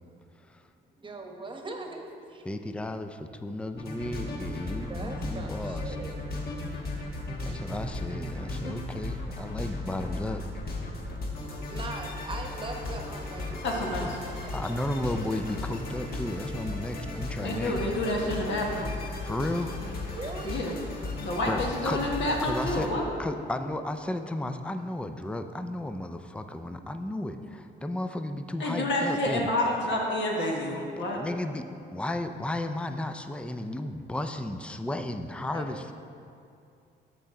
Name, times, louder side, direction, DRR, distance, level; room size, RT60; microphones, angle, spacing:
voice 1, 1.0-2.4 4.9-6.2 7.0-7.1 7.5-7.6 11.7-15.2 20.1-20.6 27.4-27.5 35.5-35.9, right 2 dB, 25° right, 2 dB, 1.1 m, -41 dB
voice 2, 2.4-6.0 7.4-10.4 14.5-17.8 19.2-19.7 21.5-22.0 22.4-22.9 23.2-29.5 31.1-35.9, left 1 dB, 5° left, 8 dB, 0.4 m, -33 dB
sound 1, 3.8-22.9, left 2 dB, 50° left, 1.2 m, -36 dB
voice 3, 13.6-14.2 17.4-18.9 20.4-20.7 21.2-23.0 28.6-31.2, left 1 dB, 65° left, -1 dB, 1.4 m, -29 dB
13.0 x 4.4 x 3.7 m, 2.6 s
cardioid pair, 90°, 20 cm